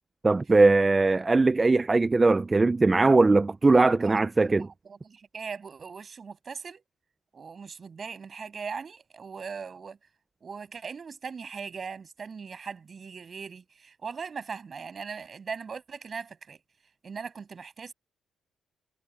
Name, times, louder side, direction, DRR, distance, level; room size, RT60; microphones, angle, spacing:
voice 1, 0.2-4.7, right 3 dB, 20° right, 0.6 m, -20 dB
voice 2, 3.6-4.1 4.4-6.8 7.3-10.0 10.4-16.6 17.0-17.9, right 5 dB, 40° right, 7.7 m, -39 dB
cardioid pair, 90°, 0 cm